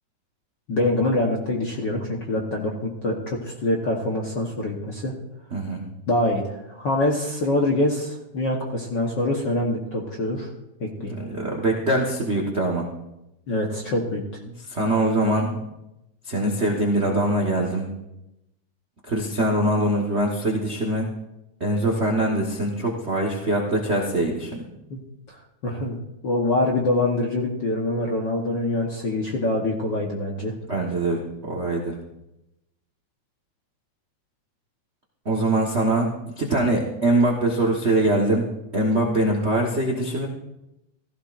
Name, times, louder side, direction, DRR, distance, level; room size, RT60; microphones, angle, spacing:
voice 1, 0.7-5.1 6.1-10.5 10.8-11.1 13.5-14.2 24.9-25.0 25.3-25.4 25.6-26.0 26.2-30.5, left 1 dB, 55° left, -1 dB, 1.2 m, -25 dB
voice 2, 5.5-5.8 11.1-12.9 14.7-15.6 16.3-17.9 19.1-21.1 21.6-24.6 30.7-31.9 35.2-36.1 36.4-40.3, right 1 dB, 60° right, 0 dB, 0.6 m, -23 dB
16.0 x 14.5 x 2.5 m, 0.90 s
omnidirectional pair, 3.5 m